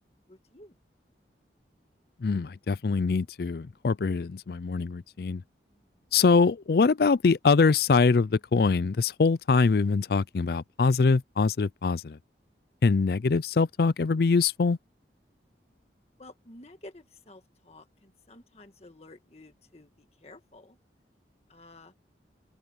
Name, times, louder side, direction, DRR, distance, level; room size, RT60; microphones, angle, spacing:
voice 1, 0.3-0.7 16.2-20.8 21.5-21.9, left 2 dB, 35° left, 1.6 m, -51 dB
voice 2, 2.2-5.4 6.1-12.2 12.8-14.8, left 4 dB, 60° left, 0.4 m, -23 dB
open air
head